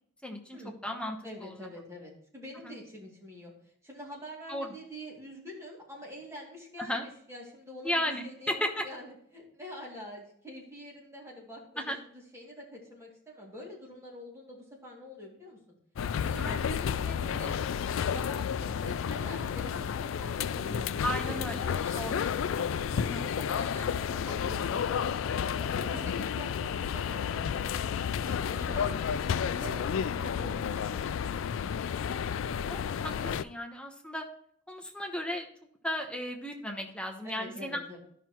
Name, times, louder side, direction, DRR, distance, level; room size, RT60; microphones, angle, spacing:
voice 1, 0.2-1.5 2.6-2.7 4.5-4.8 6.8-7.0 7.8-8.8 11.8-12.0 16.4-16.6 21.0-21.7 21.9-22.3 23.1-23.2 28.8-29.0 32.7-32.8 33.0-34.3 34.7-35.5 35.8-37.8, equal, 5° left, 2 dB, 0.9 m, -35 dB
voice 2, 1.2-3.5 3.8-15.8 16.2-17.6 18.0-22.2 22.6-25.2 25.5-32.0 37.2-38.0, equal, 15° right, -3 dB, 2.4 m, -46 dB
sound 1, 16.0-33.4, left 7 dB, 75° left, 0.3 m, -31 dB
12.5 x 5.7 x 3.0 m, 0.66 s
head